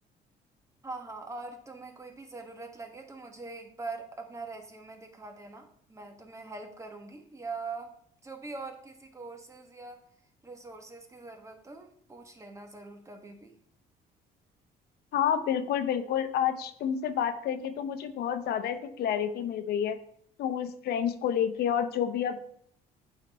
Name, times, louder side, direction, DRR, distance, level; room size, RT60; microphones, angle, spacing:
voice 1, 0.8-7.9 8.2-10.0 10.4-13.6, right 3 dB, 15° right, 4 dB, 1.3 m, -43 dB
voice 2, 15.1-20.0 20.4-22.4, left 8 dB, 70° left, 9 dB, 0.8 m, -29 dB
8.4 x 4.1 x 4.2 m, 0.64 s
cardioid pair, 110°, 17 cm